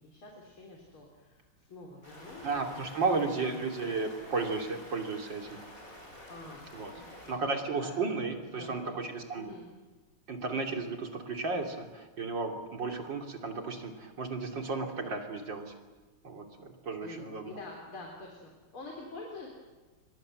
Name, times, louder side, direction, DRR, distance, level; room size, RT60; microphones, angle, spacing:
voice 1, 0.0-2.5 3.2-3.7 6.3-6.7 6.9-7.4 7.8-8.0 8.6-9.0 9.4-9.7 17.0-19.5, left 2 dB, 85° left, 0 dB, 4.5 m, -47 dB
Stream, 2.0-7.3, left 1 dB, 40° left, 8.5 m, -49 dB
voice 2, 2.4-5.6 6.7-6.9 7.3-9.5 10.3-15.7 16.2-17.6, right 4 dB, 60° right, 3 dB, 3.8 m, -34 dB
29.5 x 25.0 x 7.9 m, 1.3 s
omnidirectional pair, 2.3 m